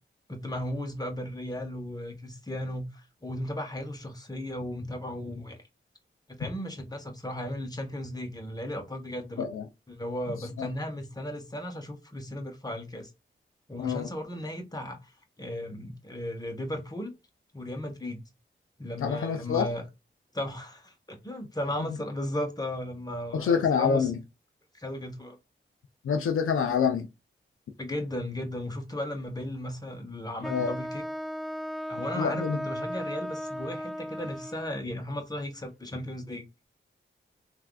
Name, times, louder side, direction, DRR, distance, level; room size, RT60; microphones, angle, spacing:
voice 1, 0.3-5.6 6.3-9.4 9.9-13.1 13.7-15.1 15.4-17.1 17.5-18.2 18.8-19.9 20.3-24.1 24.7-25.4 27.8-31.0 31.9-36.4, left 1 dB, 20° left, 1.2 m, -35 dB
voice 2, 19.0-19.7 23.3-24.1 26.0-27.1 30.5-30.7 32.1-32.6, left 6 dB, 90° left, 0.4 m, -26 dB
Wind instrument woodwind instrument, 30.4-34.9, equal, ahead, 0.6 m, -36 dB
3.3 x 2.5 x 2.3 m
cardioid pair, 40°, 21 cm